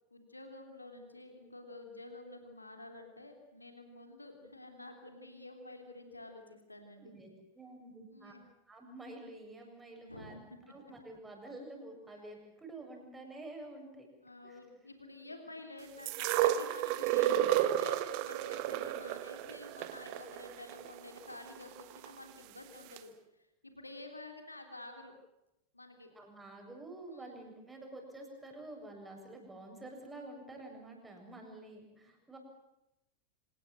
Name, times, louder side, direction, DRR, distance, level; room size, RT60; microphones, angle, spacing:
voice 1, 0.1-7.1 8.1-8.4 10.0-10.4 14.2-25.1 25.7-26.1 27.1-27.4, left 2 dB, 85° left, 5 dB, 3.4 m, -50 dB
voice 2, 7.0-8.3 8.7-10.4 10.7-14.1 14.4-14.6 18.7-18.9 26.1-32.4, right 2 dB, 10° right, 2 dB, 7.5 m, -49 dB
sound 1, 16.1-22.1 23.0-23.1, right 12 dB, 45° right, 1.5 m, -32 dB
26.5 x 19.0 x 7.8 m, 0.90 s
figure-of-eight pair, 90°, 0 cm